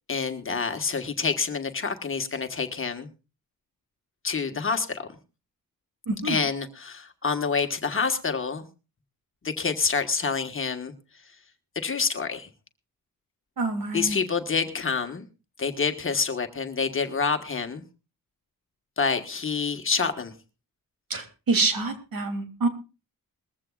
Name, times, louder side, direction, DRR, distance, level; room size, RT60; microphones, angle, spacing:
voice 1, 0.1-3.1 4.2-5.1 6.2-8.6 9.4-10.9 11.8-12.5 13.9-15.2 15.6-17.8 19.0-20.3, left 5 dB, 35° left, 6 dB, 1.4 m, -27 dB
voice 2, 6.1-6.4 13.6-14.2 21.1-22.7, right 3 dB, 70° right, 6 dB, 2.9 m, -26 dB
21.0 x 15.5 x 2.4 m, 0.32 s
wide cardioid pair, 170°, 35 cm